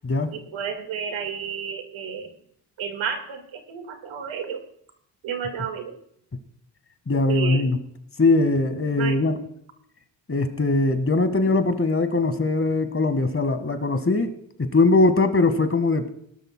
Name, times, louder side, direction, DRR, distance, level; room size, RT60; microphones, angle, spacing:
voice 1, 0.3-2.3 2.8-4.6 5.2-6.0 7.3-7.7 8.9-9.2, right 7 dB, 85° right, 7 dB, 1.9 m, -31 dB
voice 2, 7.1-7.8 8.2-9.4 10.3-14.3 14.6-16.1, left 3 dB, 30° left, 9 dB, 1.6 m, -21 dB
19.0 x 12.0 x 2.2 m, 0.66 s
cardioid pair, 65°, 47 cm